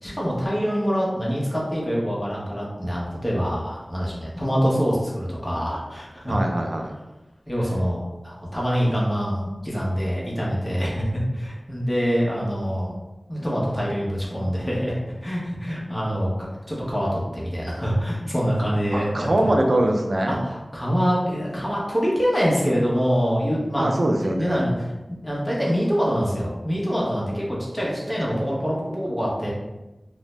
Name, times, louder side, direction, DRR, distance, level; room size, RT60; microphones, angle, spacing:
voice 1, 0.0-6.3 7.5-13.0 13.3-16.3 16.7-19.5 20.3-24.9 25.2-29.5, equal, 20° left, -5 dB, 0.9 m, -25 dB
voice 2, 6.2-6.9 18.9-20.5 23.8-24.7, right 1 dB, 70° right, 2 dB, 0.3 m, -23 dB
2.4 x 2.0 x 3.2 m, 1.1 s
wide cardioid pair, 60°, 0 cm